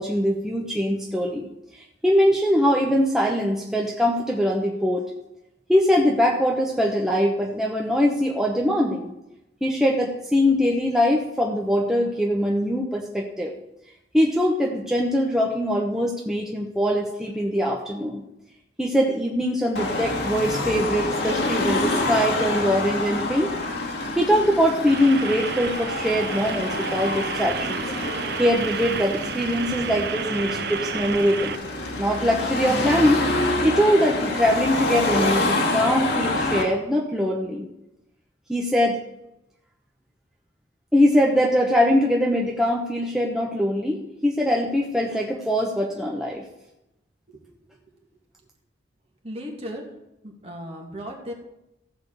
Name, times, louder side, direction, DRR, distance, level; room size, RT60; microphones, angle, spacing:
voice 1, 0.0-1.5 2.0-5.1 5.7-9.1 9.6-13.5 14.1-18.2 18.8-23.5 24.2-27.9 28.4-31.6 32.0-33.3 33.6-37.7 38.5-39.0 40.9-46.4, equal, 5° right, -2 dB, 1.0 m, -22 dB
Car passing by / Traffic noise roadway noise / Engine, 19.8-36.6, left 2 dB, 65° left, 2.1 m, -27 dB
sound 1, 24.9-31.6, right 6 dB, 60° right, 0.6 m, -31 dB
voice 2, 49.2-49.8 50.2-51.3, equal, 35° right, 0 dB, 2.1 m, -36 dB
15.0 x 5.1 x 6.6 m, 0.89 s
head